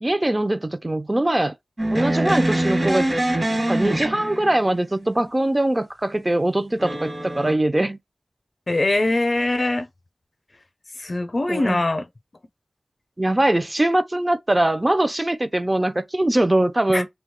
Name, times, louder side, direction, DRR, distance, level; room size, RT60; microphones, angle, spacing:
voice 1, 0.0-1.5 1.9-3.1 3.6-8.0 11.5-11.8 13.2-17.1, right 1 dB, 30° right, 0.4 m, -22 dB
sound 1, 1.8-4.8 6.8-7.5, right 1 dB, 45° right, 1.1 m, -24 dB
voice 2, 8.7-9.9 11.0-12.1 16.9-17.0, left 2 dB, 50° left, 0.5 m, -22 dB
2.8 x 2.3 x 3.6 m
wide cardioid pair, 55°, 0 cm